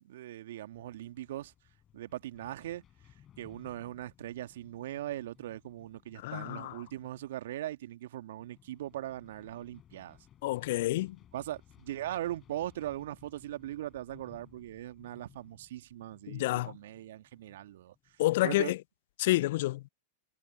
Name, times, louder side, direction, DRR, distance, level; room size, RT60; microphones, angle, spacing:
voice 1, 0.0-1.5 1.9-2.8 3.4-10.2 11.3-17.9 18.4-18.7, right 13 dB, 65° right, 1.8 m, -40 dB
sound 1, 0.7-18.2, left 10 dB, 30° left, 5.8 m, -61 dB
voice 2, 6.2-6.7 10.4-11.2 16.3-16.7 18.2-18.7 19.2-19.8, left 17 dB, 60° left, 0.4 m, -29 dB
figure-of-eight pair, 95°, 0 cm